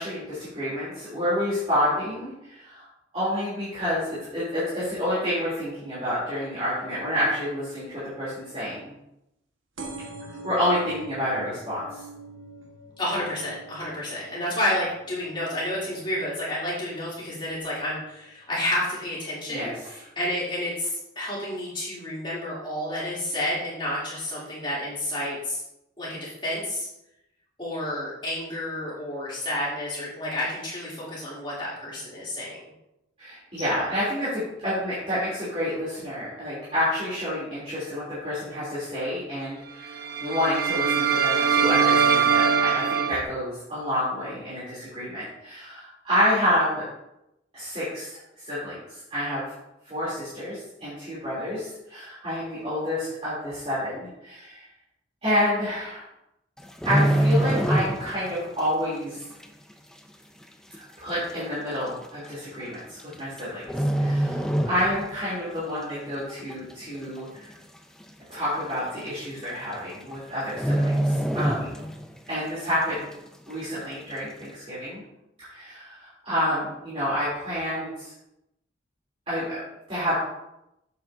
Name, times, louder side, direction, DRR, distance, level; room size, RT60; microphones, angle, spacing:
voice 1, 0.0-2.9 3.1-8.9 10.4-12.0 19.5-19.7 33.2-46.8 47.5-49.5 49.8-54.6 55.2-56.0 56.8-59.2 60.7-67.5 68.3-71.8 72.3-73.0 73.5-75.0 75.5-78.1 79.3-79.6 79.9-80.1, equal, 30° right, -11 dB, 3.2 m, -29 dB
sound 1, 9.8-17.0 17.5-17.9 18.8-18.9 19.1-19.2 19.4-19.5, right 2 dB, 90° right, 1.5 m, -44 dB
voice 2, 13.0-25.6 26.0-26.9 27.6-32.6, left 1 dB, 25° left, -7 dB, 3.1 m, -30 dB
sound 2, 39.8-43.2, right 7 dB, 50° right, 0.8 m, -22 dB
sound 3, 56.6-58.3 58.6-58.9 59.4-59.5 60.4-60.5 60.7-60.8 61.7-61.9 63.0-63.4 63.7-65.2 65.6-65.8 66.3-66.8 67.2-67.3 67.5-67.6 68.0-68.1 69.1-69.2 69.4-69.7 70.0-70.1 70.5-72.2 72.5-72.6, right 1 dB, 5° left, 0.4 m, -24 dB
8.4 x 7.9 x 2.7 m, 0.87 s
head